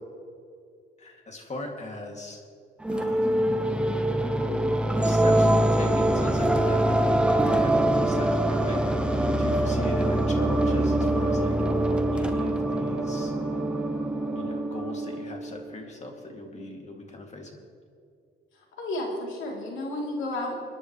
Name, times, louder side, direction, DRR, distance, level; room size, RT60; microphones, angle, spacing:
voice 1, 1.0-2.4 2.9-3.3 4.9-11.6 12.1-13.3 14.3-17.6, left 2 dB, 35° left, 1 dB, 2.5 m, -39 dB
sound 1, 2.8-15.8, right 1 dB, 5° right, 1.0 m, -24 dB
voice 2, 18.8-20.6, left 1 dB, 80° left, -1 dB, 3.2 m, -32 dB
29.5 x 9.9 x 3.2 m, 2.4 s
cardioid pair, 90°, 20 cm